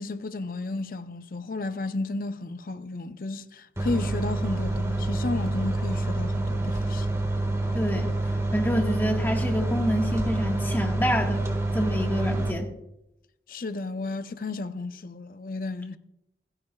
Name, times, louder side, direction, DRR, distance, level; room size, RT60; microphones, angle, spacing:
voice 1, 0.0-7.1 13.5-16.0, left 3 dB, 50° left, 0.6 m, -33 dB
sound 1, 3.8-12.5, right 2 dB, 15° right, 1.7 m, -27 dB
voice 2, 7.7-8.1 8.5-11.5 11.7-12.7, equal, 10° left, 1.6 m, -27 dB
27.5 x 10.0 x 2.4 m
head